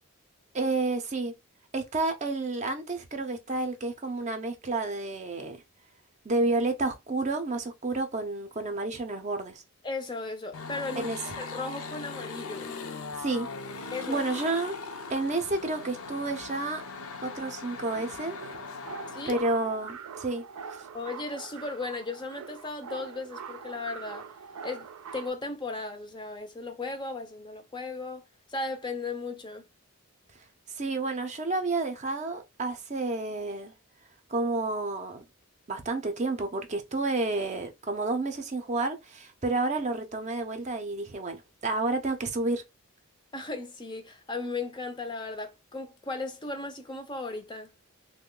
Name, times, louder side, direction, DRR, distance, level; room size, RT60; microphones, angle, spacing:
voice 1, 0.5-1.3 1.7-5.6 6.2-9.6 11.0-11.2 13.2-13.5 14.1-14.7 15.1-16.8 17.2-18.4 19.3-20.4 30.8-33.7 34.3-35.2 35.7-42.6, right 3 dB, 30° right, 0.5 m, -30 dB
voice 2, 9.8-12.7 13.9-14.2 19.1-19.4 20.9-24.2 24.6-29.7 43.3-47.7, left 3 dB, 20° left, 0.4 m, -36 dB
sound 1, 10.5-19.4, left 4 dB, 80° left, 0.6 m, -39 dB
sound 2, 18.3-25.3, right 6 dB, 90° right, 0.5 m, -43 dB
3.1 x 2.1 x 3.7 m
head